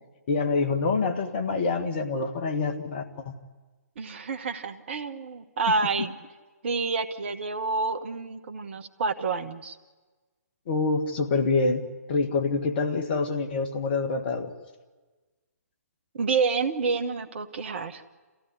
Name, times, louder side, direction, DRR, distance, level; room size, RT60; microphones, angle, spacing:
voice 1, 0.3-3.3 10.7-14.5, left 4 dB, 40° left, 7 dB, 2.0 m, -26 dB
voice 2, 4.0-6.1 6.6-9.8 16.1-18.0, right 4 dB, 45° right, 8 dB, 1.4 m, -28 dB
28.5 x 15.5 x 10.0 m, 1.3 s
figure-of-eight pair, 130°, 9 cm